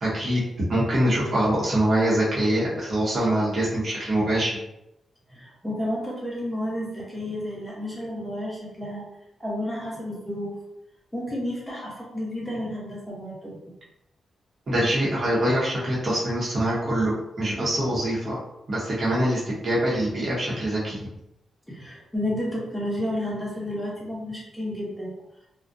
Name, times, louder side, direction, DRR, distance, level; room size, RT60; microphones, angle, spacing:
voice 1, 0.0-4.6 14.7-18.3 18.7-21.0, right 1 dB, 45° right, -7 dB, 0.8 m, -24 dB
voice 2, 5.3-9.0 9.4-10.5 11.1-13.6 21.7-25.1, left 1 dB, 5° left, -5 dB, 0.9 m, -31 dB
2.4 x 2.1 x 2.5 m, 0.87 s
cardioid pair, 100°, 0 cm